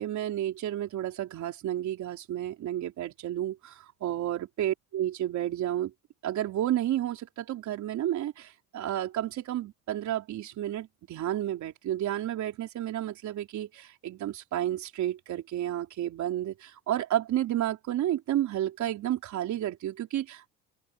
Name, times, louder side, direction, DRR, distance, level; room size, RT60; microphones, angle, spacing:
voice 1, 0.0-5.9 6.2-20.5, right 12 dB, 65° right, 3.9 m, -31 dB
cardioid pair, 95°, 31 cm